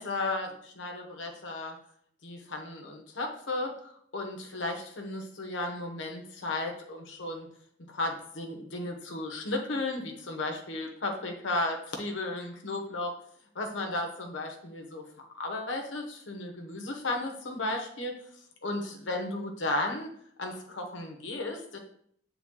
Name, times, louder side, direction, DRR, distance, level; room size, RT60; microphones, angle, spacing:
voice 1, 0.0-1.8 2.2-7.5 7.9-13.1 13.5-18.1 18.6-20.1 20.4-21.8, left 2 dB, 75° left, 2 dB, 0.9 m, -34 dB
7.8 x 3.4 x 3.7 m, 0.66 s
head